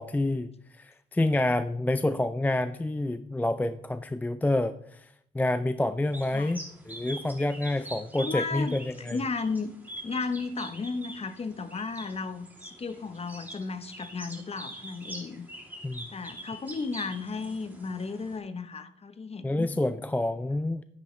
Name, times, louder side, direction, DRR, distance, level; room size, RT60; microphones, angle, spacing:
voice 1, 0.0-9.2 15.8-16.1 19.4-20.8, left 2 dB, 10° left, 11 dB, 0.4 m, -28 dB
sound 1, 6.1-18.4, right 1 dB, 10° right, 2.8 m, -44 dB
voice 2, 8.2-9.7 10.0-15.5 16.1-19.7, left 4 dB, 30° left, 11 dB, 0.9 m, -34 dB
10.0 x 9.9 x 3.2 m, 0.72 s
cardioid pair, 90°, 20 cm